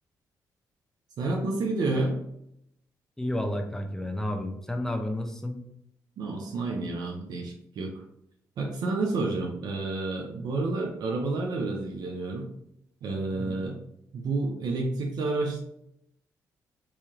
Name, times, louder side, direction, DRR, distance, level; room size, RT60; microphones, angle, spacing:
voice 1, 1.2-2.2 6.2-8.0 8.6-12.5 13.0-13.8 14.1-15.6, right 3 dB, 70° right, 0 dB, 0.6 m, -30 dB
voice 2, 3.2-5.6 13.3-13.6, left 1 dB, 5° left, 5 dB, 0.7 m, -31 dB
3.1 x 2.8 x 3.7 m, 0.76 s
cardioid pair, 70°, 7 cm